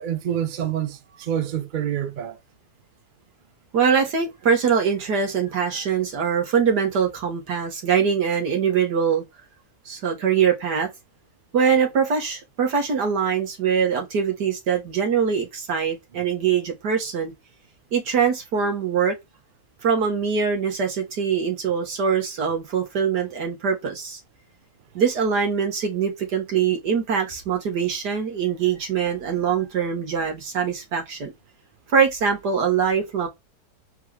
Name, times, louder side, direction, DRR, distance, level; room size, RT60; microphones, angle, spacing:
voice 1, 0.0-2.4, right 10 dB, 50° right, 0.6 m, -27 dB
voice 2, 3.7-9.2 9.9-10.9 11.5-17.3 17.9-19.1 19.8-24.2 25.0-31.3 31.9-33.3, right 6 dB, 80° right, 2.2 m, -23 dB
4.6 x 3.2 x 3.3 m
omnidirectional pair, 1.8 m